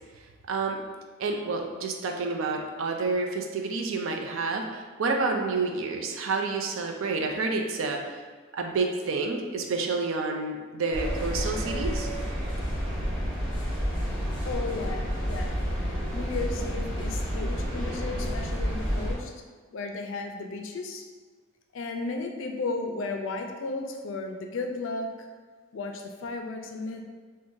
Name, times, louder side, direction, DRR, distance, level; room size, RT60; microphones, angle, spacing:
voice 1, 0.5-0.8 1.2-8.0 8.6-12.1, right 3 dB, 70° right, 3 dB, 0.4 m, -29 dB
sound 1, 10.9-19.1, equal, 25° right, 0.9 m, -30 dB
voice 2, 14.4-15.6 15.8-19.3 19.7-21.0 21.7-25.3 25.7-27.0, left 3 dB, 65° left, 4 dB, 0.4 m, -34 dB
2.6 x 2.5 x 3.7 m, 1.5 s
head